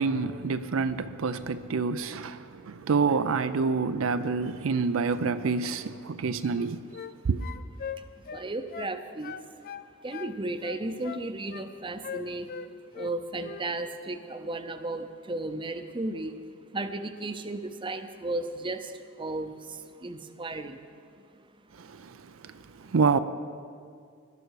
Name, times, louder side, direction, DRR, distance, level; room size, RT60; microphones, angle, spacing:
voice 1, 0.0-6.8 7.2-7.4 21.8-21.9 22.9-23.2, right 5 dB, 75° right, 0.5 m, -27 dB
sound 1, 6.4-7.1 7.4-8.9 9.2-10.3 10.6-11.7 12.0-13.1 13.4-13.7, left 7 dB, 45° left, 0.5 m, -40 dB
voice 2, 8.0-9.4 10.0-12.5 12.9-16.4 16.7-20.9, right 2 dB, 25° right, 0.6 m, -34 dB
18.0 x 12.0 x 4.8 m
head